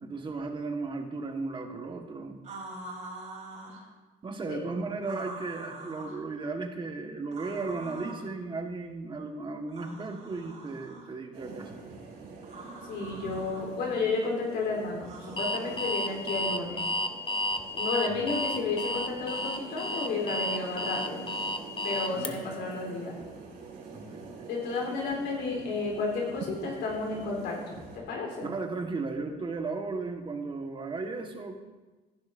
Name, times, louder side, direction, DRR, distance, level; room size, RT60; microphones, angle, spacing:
voice 1, 0.0-2.4 4.2-11.8 18.1-18.3 22.1-22.5 23.9-24.3 28.4-31.6, right 3 dB, 30° right, 4 dB, 1.4 m, -35 dB
sound 1, 2.4-3.8 5.0-6.2 7.3-8.3 9.7-11.1 12.4-13.6 15.0-16.3, right 2 dB, 45° right, 3.2 m, -44 dB
sound 2, 11.3-28.0, right 4 dB, 75° right, 3.9 m, -45 dB
voice 2, 12.9-16.9 17.7-21.3 21.8-23.2 24.5-28.5, left 3 dB, 80° left, -1 dB, 3.6 m, -32 dB
Alarm, 15.4-22.3, left 1 dB, 30° left, 0.9 m, -31 dB
16.0 x 10.5 x 2.6 m, 1.2 s
cardioid pair, 110°, 17 cm